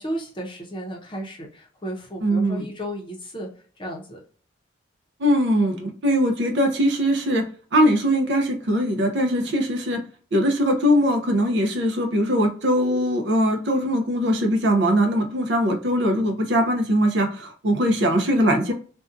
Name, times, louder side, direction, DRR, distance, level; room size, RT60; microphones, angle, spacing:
voice 1, 0.0-3.5 3.8-4.2, right 1 dB, 25° left, -1 dB, 0.7 m, -33 dB
voice 2, 2.2-2.7 5.2-10.0 10.3-18.7, equal, 60° right, 3 dB, 0.6 m, -21 dB
2.6 x 2.2 x 2.4 m, 0.43 s
head